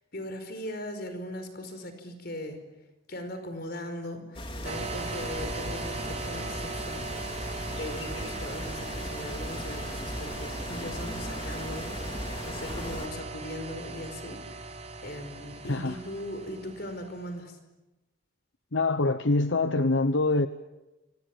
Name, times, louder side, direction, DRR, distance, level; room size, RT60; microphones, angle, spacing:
voice 1, 0.1-2.6 3.1-7.1 7.7-14.4 15.0-17.6, left 1 dB, 55° left, 8 dB, 5.0 m, -39 dB
sound 1, 4.3-13.1, left 1 dB, 25° left, 3.7 m, -38 dB
sound 2, 4.6-17.2, right 3 dB, 35° right, 2.8 m, -38 dB
voice 2, 15.7-16.0 18.7-20.5, left 2 dB, 75° left, 11 dB, 0.9 m, -25 dB
29.0 x 25.5 x 7.4 m, 1.0 s
head